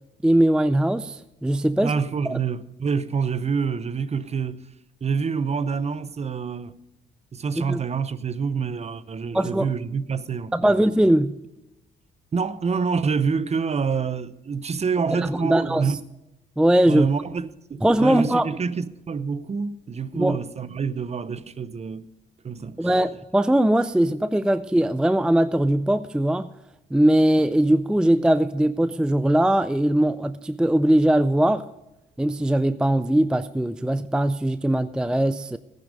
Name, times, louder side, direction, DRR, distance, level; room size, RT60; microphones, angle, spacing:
voice 1, 0.2-1.9 2.3-2.4 7.6-7.8 9.3-9.7 10.5-11.4 15.1-15.9 16.6-17.1 17.8-18.5 20.1-20.4 22.8-26.5 26.9-31.6 32.2-35.6, right 1 dB, 5° right, 0.4 m, -20 dB
voice 2, 1.8-4.6 5.0-6.8 7.3-10.8 12.3-16.0 16.9-22.0 22.4-22.9, right 5 dB, 35° right, 0.7 m, -27 dB
14.5 x 10.0 x 5.2 m
cardioid pair, 90°, 20 cm